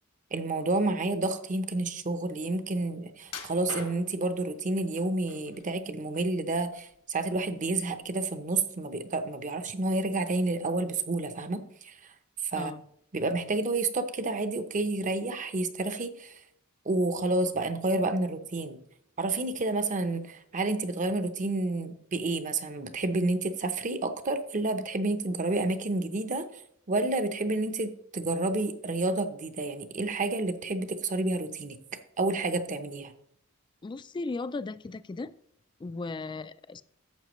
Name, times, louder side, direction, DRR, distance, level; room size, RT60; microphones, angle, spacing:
voice 1, 0.3-12.0 12.5-12.7 13.1-16.3 16.9-18.8 19.2-26.5 26.9-31.8 32.2-33.1, right 2 dB, 35° right, 10 dB, 0.7 m, -30 dB
sound 1, 3.3-4.3 5.0-5.6 6.0-7.0 7.3-7.5 8.0-8.1, left 4 dB, 80° left, 1.8 m, -42 dB
voice 2, 33.8-35.3 35.8-36.8, left 3 dB, 20° left, 15 dB, 0.3 m, -36 dB
11.5 x 7.5 x 3.1 m, 0.72 s
head